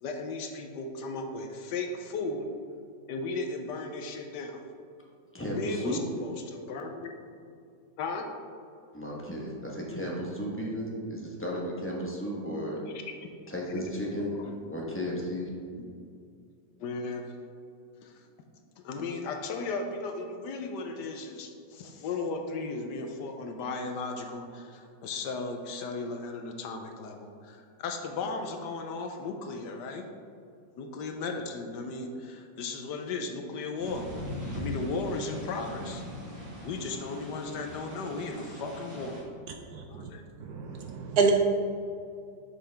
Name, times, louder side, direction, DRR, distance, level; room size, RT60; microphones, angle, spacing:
voice 1, 0.0-2.5 3.1-4.6 5.6-7.1 8.0-8.3 13.7-13.8 14.3-14.5 16.8-17.3 18.0-18.1 18.8-30.1 30.8-34.1 34.5-36.0 36.6-39.2 39.9-40.2, left 3 dB, 75° left, 4 dB, 1.2 m, -36 dB
voice 2, 5.3-6.0 8.9-12.8 13.5-14.4 14.7-15.5, equal, 10° left, -3 dB, 0.8 m, -34 dB
sound 1, 33.8-39.2, left 1 dB, 30° right, 1.9 m, -40 dB
voice 3, 39.7-40.1 40.4-41.3, right 5 dB, 70° right, 3 dB, 1.0 m, -28 dB
7.5 x 5.7 x 3.4 m, 2.4 s
omnidirectional pair, 2.0 m